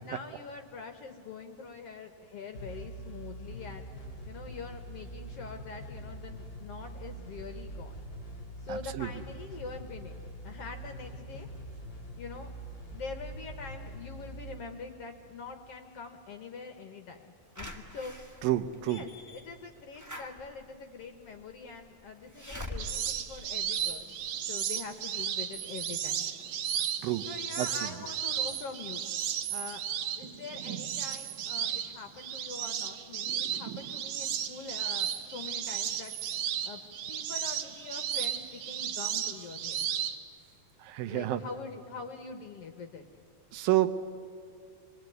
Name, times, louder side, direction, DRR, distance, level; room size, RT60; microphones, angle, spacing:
voice 1, 0.0-3.9 4.2-8.0 8.6-10.1 10.4-11.5 12.2-12.5 12.9-18.2 18.9-24.2 24.4-26.3 27.2-29.1 29.5-29.8 30.2-36.1 36.6-36.8 37.1-39.9 41.0-43.1, left 5 dB, 60° left, 6 dB, 1.6 m, -44 dB
sound 1, 2.5-15.8, right 1 dB, 20° left, 2.4 m, -44 dB
voice 2, 8.7-9.1 18.4-19.0 27.0-27.3 27.6-27.7 40.8-41.4 43.5-43.9, right 14 dB, 85° right, 11 dB, 2.7 m, -29 dB
Slam / Alarm, 17.6-24.4 24.8-24.9 25.2-25.3, left 1 dB, 15° right, 0.6 m, -45 dB
sound 2, 22.8-40.2, right 9 dB, 65° right, 2.2 m, -34 dB
27.0 x 21.5 x 9.3 m, 2.3 s
omnidirectional pair, 4.0 m